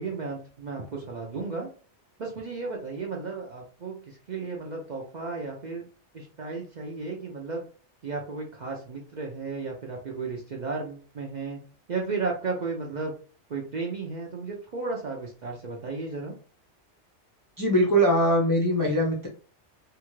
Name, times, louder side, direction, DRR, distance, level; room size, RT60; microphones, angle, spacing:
voice 1, 0.0-1.7 2.2-5.9 6.1-7.6 8.0-11.6 11.9-13.1 13.5-16.4, right 4 dB, 55° right, -1 dB, 0.5 m, -34 dB
voice 2, 17.6-19.3, equal, 35° left, -2 dB, 0.3 m, -22 dB
2.8 x 2.3 x 3.0 m, 0.40 s
omnidirectional pair, 1.2 m